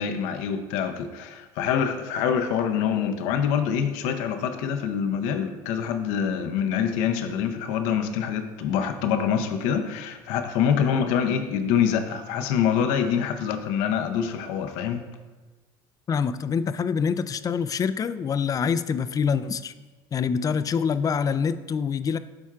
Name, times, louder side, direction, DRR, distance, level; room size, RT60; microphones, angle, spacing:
voice 1, 0.0-15.0, left 8 dB, 75° left, 7 dB, 0.6 m, -25 dB
voice 2, 16.1-19.7 20.1-22.2, left 6 dB, 30° left, 13 dB, 0.3 m, -25 dB
12.0 x 4.4 x 2.4 m, 1.2 s
supercardioid pair, 85°, 13 cm